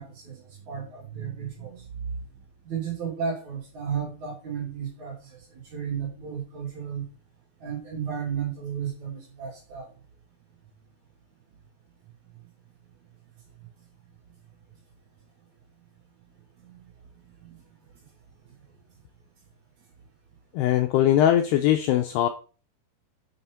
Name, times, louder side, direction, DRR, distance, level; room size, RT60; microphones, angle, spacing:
voice 1, 0.0-1.9 2.7-5.4 5.7-7.1 7.6-9.9 16.6-16.9 17.4-17.5, right 7 dB, 45° right, -2 dB, 3.6 m, -33 dB
voice 2, 20.5-22.3, left 11 dB, 80° left, 5 dB, 2.4 m, -21 dB
8.6 x 7.0 x 4.4 m, 0.37 s
omnidirectional pair, 5.4 m